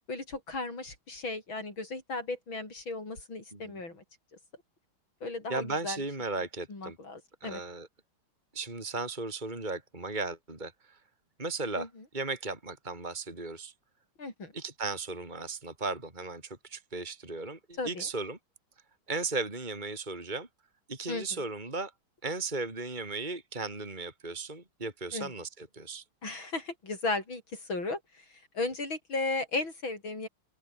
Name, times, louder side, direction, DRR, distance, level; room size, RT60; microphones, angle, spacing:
voice 1, 0.1-4.0 5.2-6.0 6.7-7.6 11.8-11.9 14.2-14.5 17.8-18.1 21.1-21.5 25.1-25.3 26.2-30.3, left 3 dB, 70° left, 7.2 m, -35 dB
voice 2, 5.5-7.0 7.4-7.9 8.5-11.0 11.4-11.9 12.1-13.7 14.5-18.4 19.1-20.5 20.9-21.9 22.2-26.0, right 3 dB, 20° right, 3.8 m, -36 dB
open air
omnidirectional pair, 2.2 m